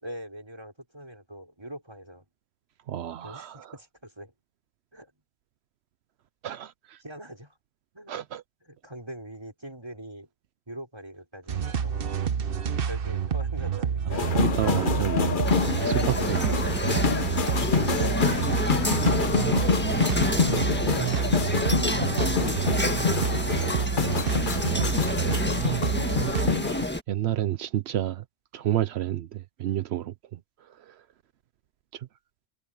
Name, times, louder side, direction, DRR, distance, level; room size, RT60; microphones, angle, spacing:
voice 1, 0.0-2.2 3.2-4.3 4.9-5.1 7.0-7.5 7.9-8.2 8.6-10.3 10.7-12.1 12.8-14.2 17.9-19.5 20.2-23.2 23.6-24.5, equal, 25° right, 4.4 m, -43 dB
voice 2, 2.9-3.7 6.4-7.0 8.1-8.4 14.3-15.3 15.8-16.9 25.6-26.0 27.1-28.2 28.5-31.0 31.9-32.1, right 11 dB, 85° right, 0.9 m, -31 dB
sound 1, 11.5-26.5, right 7 dB, 60° right, 1.1 m, -28 dB
sound 2, 14.1-26.9, left 5 dB, 55° left, 1.1 m, -27 dB
sound 3, 15.4-27.0, left 1 dB, 10° left, 1.5 m, -30 dB
omnidirectional pair, 1.1 m